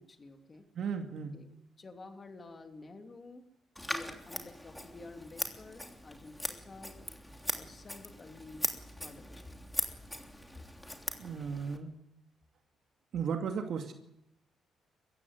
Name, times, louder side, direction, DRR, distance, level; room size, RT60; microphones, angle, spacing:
voice 1, 0.0-0.7 1.3-1.5 1.8-3.4 3.8-6.9 7.5-8.7 9.0-9.7, left 3 dB, 35° left, 5 dB, 2.9 m, -50 dB
voice 2, 0.7-1.3 11.2-11.9 13.1-13.9, right 6 dB, 65° right, 4 dB, 2.4 m, -35 dB
Scissors, 3.8-11.8, left 1 dB, 5° left, 3.1 m, -40 dB
22.5 x 15.5 x 9.6 m, 0.83 s
cardioid pair, 90°, 0 cm